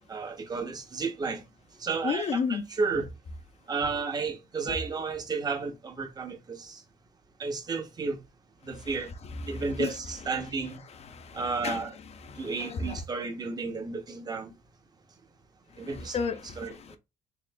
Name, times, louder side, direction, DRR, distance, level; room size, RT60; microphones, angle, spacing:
voice 1, 0.1-1.4 1.8-3.1 3.7-6.8 7.4-8.2 8.6-9.1 9.5-10.8 11.3-11.9 12.4-14.5 15.8-16.2 16.6-16.7, right 4 dB, 25° right, 0.8 m, -32 dB
voice 2, 2.0-2.6 8.8-8.9 9.4-9.9 11.1-11.9 12.2-13.0 15.8-17.0, left 5 dB, 40° left, 0.5 m, -33 dB
3.6 x 3.6 x 2.2 m
cardioid pair, 110°, 17 cm